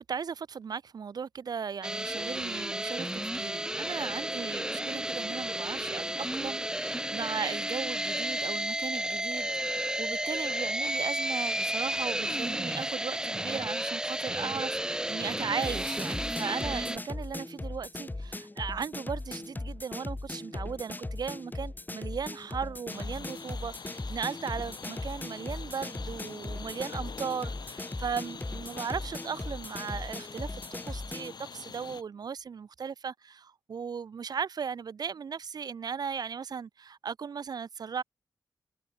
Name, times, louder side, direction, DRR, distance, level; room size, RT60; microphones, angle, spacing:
voice 1, 0.0-38.0, right 6 dB, 60° right, 0.4 m, -37 dB
sound 1, 1.8-17.0, right 1 dB, 10° right, 1.0 m, -32 dB
sound 2, 15.6-31.4, left 2 dB, 25° left, 2.2 m, -38 dB
sound 3, 22.9-32.0, left 6 dB, 65° left, 0.8 m, -46 dB
cardioid pair, 65°, 8 cm